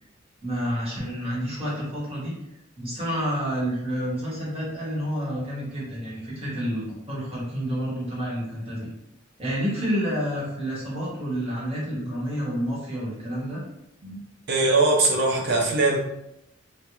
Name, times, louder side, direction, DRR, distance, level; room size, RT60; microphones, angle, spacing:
voice 1, 0.4-2.3 2.8-8.9 9.4-13.6, equal, 30° right, -6 dB, 1.0 m, -29 dB
voice 2, 14.5-16.0, right 2 dB, 55° right, -1 dB, 0.6 m, -21 dB
2.4 x 2.1 x 3.0 m, 0.83 s
head